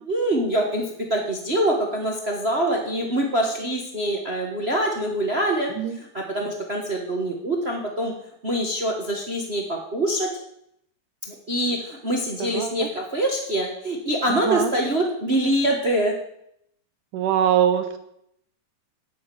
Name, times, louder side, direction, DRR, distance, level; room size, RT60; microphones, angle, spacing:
voice 1, 0.0-5.7 6.0-8.1 8.4-10.3 11.3-16.2, right 1 dB, 45° right, 2 dB, 0.8 m, -24 dB
voice 2, 12.4-12.8 14.3-14.7 17.1-18.0, right 9 dB, 85° right, 9 dB, 2.6 m, -22 dB
9.7 x 8.5 x 7.6 m, 0.74 s
omnidirectional pair, 3.6 m